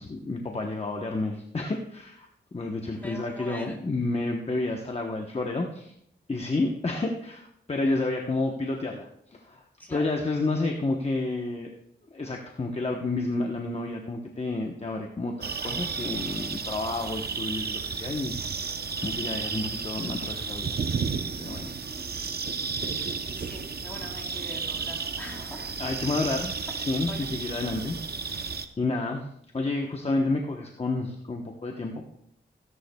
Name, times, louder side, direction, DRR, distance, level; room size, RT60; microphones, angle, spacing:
voice 1, 0.0-5.9 6.3-9.6 9.9-11.7 12.1-18.7 19.0-20.8 21.4-21.8 22.8-23.0 25.8-28.0 28.2-29.3 29.5-32.0, left 2 dB, 30° left, 1 dB, 1.0 m, -30 dB
voice 2, 2.9-3.8 9.8-10.2 22.8-25.8 27.1-27.3, left 1 dB, 10° left, -2 dB, 3.6 m, -43 dB
sound 1, 15.4-28.7, right 5 dB, 55° right, 0.8 m, -33 dB
16.0 x 11.0 x 2.3 m, 0.74 s
wide cardioid pair, 90°, 20 cm